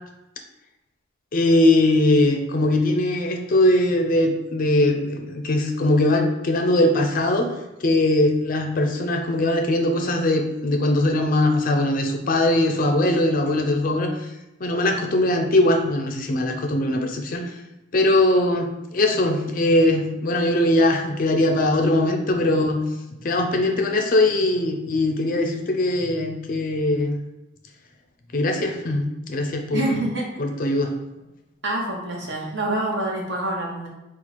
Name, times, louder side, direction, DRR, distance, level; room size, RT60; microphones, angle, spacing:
voice 1, 1.3-7.5 7.8-14.1 14.6-17.6 17.9-22.8 23.2-27.2 28.3-30.0 30.4-30.9, left 1 dB, 40° left, 4 dB, 0.4 m, -21 dB
voice 2, 29.7-30.3 31.6-33.9, right 2 dB, 55° right, -1 dB, 1.0 m, -26 dB
4.4 x 2.4 x 4.1 m, 0.98 s
head